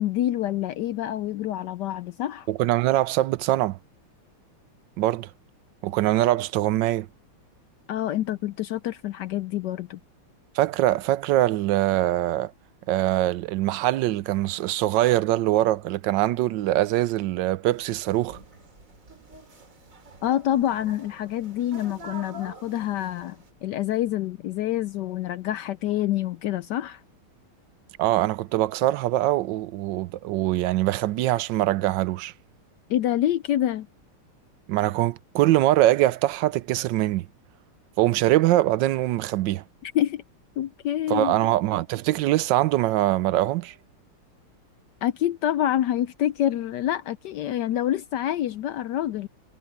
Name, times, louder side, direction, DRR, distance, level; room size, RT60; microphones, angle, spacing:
voice 1, 0.0-2.5 7.9-10.0 20.2-27.0 32.9-33.9 39.8-40.2 40.6-41.4 45.0-49.3, left 12 dB, 80° left, 0.9 m, -27 dB
voice 2, 2.5-3.8 5.0-5.3 5.8-7.1 10.5-12.5 12.9-18.4 28.0-32.3 34.7-37.3 38.0-39.6 41.1-43.7, right 15 dB, 75° right, 1.1 m, -23 dB
sound 1, 17.6-23.5, right 2 dB, 40° right, 2.7 m, -47 dB
omnidirectional pair, 2.4 m